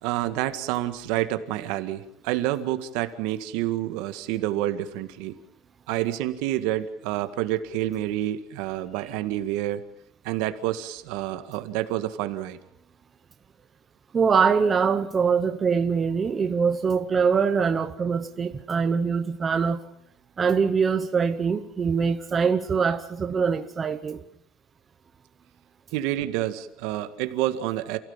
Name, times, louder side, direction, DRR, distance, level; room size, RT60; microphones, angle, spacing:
voice 1, 0.0-5.4 5.9-9.8 10.2-12.6 25.9-28.0, right 14 dB, 70° right, 1.9 m, -28 dB
voice 2, 14.1-19.8 20.4-24.2, right 6 dB, 20° right, 0.9 m, -23 dB
28.5 x 16.5 x 7.4 m
cardioid pair, 175°, 0 cm